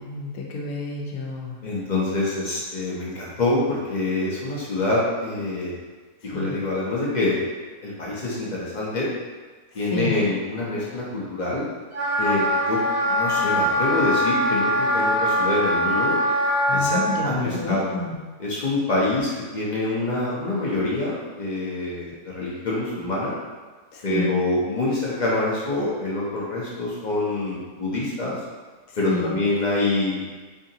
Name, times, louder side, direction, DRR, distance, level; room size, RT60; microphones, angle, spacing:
voice 1, 0.0-1.6 6.3-6.6 9.8-10.2 16.7-18.1 23.9-24.3 28.9-29.4, left 3 dB, 75° left, -1 dB, 1.1 m, -30 dB
voice 2, 1.6-5.7 6.2-7.4 7.8-9.1 9.7-11.6 12.2-16.2 16.7-17.9 18.4-23.3 24.0-28.4 29.0-30.3, left 2 dB, 45° left, -6 dB, 0.6 m, -26 dB
Wind instrument woodwind instrument, 11.9-17.1, equal, 70° right, 1.1 m, -22 dB
4.7 x 2.4 x 2.7 m, 1.4 s
omnidirectional pair, 1.5 m